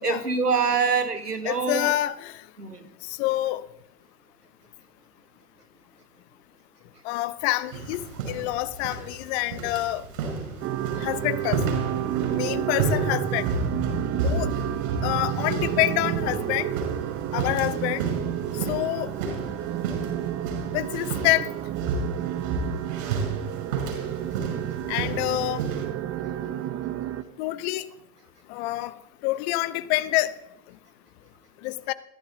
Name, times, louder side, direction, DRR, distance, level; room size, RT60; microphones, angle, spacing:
voice 1, 0.0-1.9 2.6-2.9, right 5 dB, 90° right, 1.7 m, -25 dB
voice 2, 1.4-2.3 3.0-3.6 7.0-10.0 11.0-11.6 12.3-13.5 14.2-14.5 15.0-16.7 17.3-18.1 18.7-19.1 20.7-21.5 24.9-25.6 27.4-27.8 28.5-28.9 29.2-30.3 31.6-31.9, left 17 dB, 45° left, 1.0 m, -27 dB
sound 1, 7.7-25.9, right 3 dB, 60° right, 5.7 m, -32 dB
Music ambience slow piano playing reversed dramatic, 10.6-27.2, right 12 dB, 30° right, 1.0 m, -30 dB
21.0 x 14.5 x 3.9 m
figure-of-eight pair, 85°, 46 cm